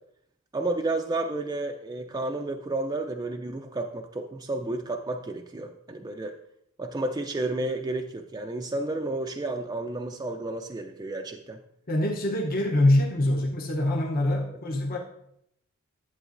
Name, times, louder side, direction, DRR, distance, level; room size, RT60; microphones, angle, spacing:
voice 1, 0.5-6.3 6.8-11.6, right 2 dB, 20° right, 3 dB, 0.4 m, -31 dB
voice 2, 11.9-15.0, left 1 dB, 45° left, 0 dB, 0.8 m, -24 dB
11.0 x 8.0 x 2.5 m, 0.74 s
head